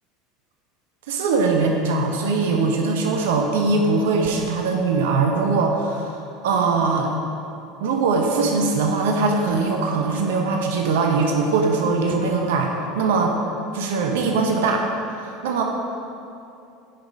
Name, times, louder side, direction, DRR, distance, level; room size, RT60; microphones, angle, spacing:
voice 1, 1.1-7.1 7.8-13.3 13.7-14.9 15.4-15.6, right 4 dB, 70° right, 2 dB, 0.9 m, -21 dB
9.8 x 5.9 x 5.2 m, 2.6 s
figure-of-eight pair, 75°, 0 cm